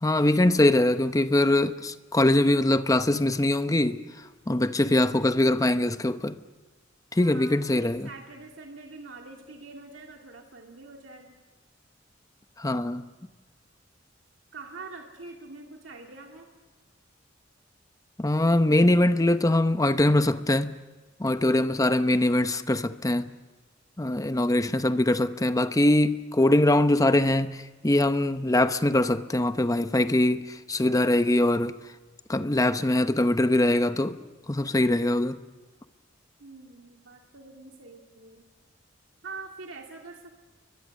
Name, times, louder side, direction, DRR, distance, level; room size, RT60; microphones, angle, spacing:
voice 1, 0.0-4.0 4.5-6.4 7.1-8.1 12.6-13.0 18.2-20.8 21.2-23.3 24.0-31.8 32.3-34.2 34.5-35.4, left 1 dB, 20° left, 0.8 m, -22 dB
voice 2, 7.2-11.4 14.5-16.5 36.4-38.4 39.2-40.4, right 3 dB, 80° right, 2.1 m, -44 dB
29.5 x 23.5 x 6.4 m
head